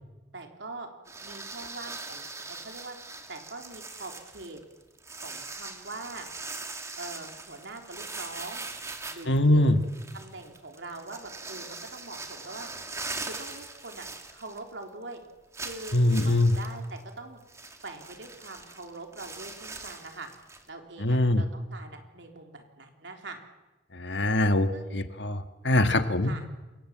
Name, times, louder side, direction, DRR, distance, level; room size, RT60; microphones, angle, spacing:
voice 1, 0.3-0.9 1.2-3.0 3.3-4.6 5.2-6.3 7.0-8.7 9.1-9.7 10.1-12.7 13.2-15.2 15.6-17.4 17.8-20.3 20.7-23.4 24.7-25.1 26.2-26.5, right 2 dB, 75° right, 3 dB, 3.7 m, -43 dB
sound 1, 1.1-14.8 15.1-15.2 15.5-20.7, right 3 dB, 15° right, 2.3 m, -41 dB
voice 2, 9.3-9.8 15.9-16.5 21.0-21.4 23.9-26.3, left 1 dB, 70° left, 8 dB, 1.8 m, -23 dB
28.5 x 24.5 x 7.5 m, 1.1 s
head